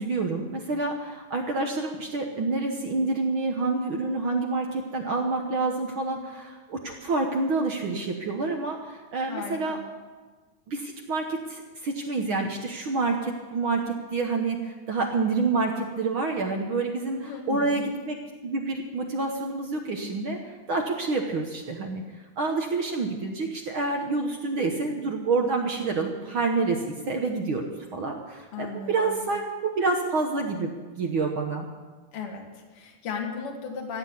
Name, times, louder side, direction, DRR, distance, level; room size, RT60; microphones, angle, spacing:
voice 1, 0.0-9.8 10.7-18.2 18.4-22.0 22.4-27.6 27.9-31.6, right 3 dB, 60° right, 2 dB, 1.3 m, -28 dB
voice 2, 9.3-9.8 17.2-17.8 28.5-29.3 32.1-34.0, left 5 dB, 50° left, 1 dB, 2.5 m, -36 dB
15.5 x 8.1 x 8.3 m, 1.4 s
omnidirectional pair, 3.6 m